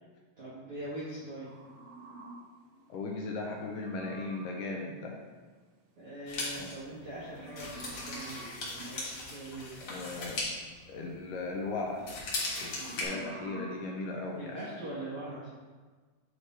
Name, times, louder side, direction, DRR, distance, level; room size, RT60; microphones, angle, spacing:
voice 1, 0.4-1.5 6.0-9.8 12.8-13.0 14.3-15.5, right 1 dB, 65° right, -9 dB, 1.5 m, -42 dB
sound 1, 1.4-4.7 6.9-9.1 10.4-11.1 11.5-14.9, right 3 dB, 85° right, 2.7 m, -50 dB
voice 2, 2.9-5.2 6.6-6.7 9.8-10.4 10.9-12.0 12.6-14.6, left 3 dB, 80° left, 0 dB, 2.1 m, -37 dB
sound 2, 6.3-11.6 11.9-13.0, left 2 dB, 50° left, 1.7 m, -38 dB
9.0 x 3.3 x 4.1 m, 1.4 s
omnidirectional pair, 4.2 m